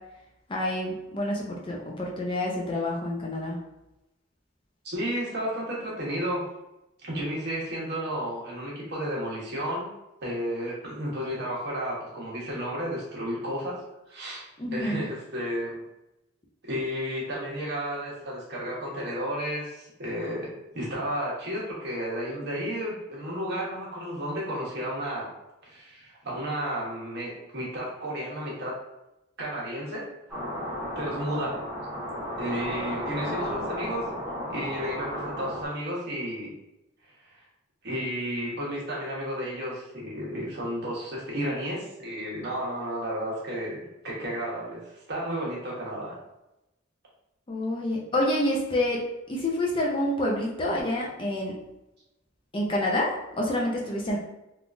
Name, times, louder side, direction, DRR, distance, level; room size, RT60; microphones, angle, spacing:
voice 1, 0.5-3.6 14.6-15.0 47.5-49.0 49.3-51.6 52.5-54.2, left 1 dB, 25° left, -2 dB, 0.5 m, -28 dB
voice 2, 4.8-6.5 7.0-9.9 10.2-13.8 14.1-15.8 16.6-25.3 25.6-28.8 29.4-30.1 30.9-31.6 32.4-34.1 34.5-36.5 37.2-37.4 37.8-46.2, equal, 50° right, -5 dB, 1.1 m, -32 dB
sound 1, 30.3-35.6, equal, 5° right, 0.8 m, -34 dB
3.5 x 2.4 x 2.5 m, 0.93 s
head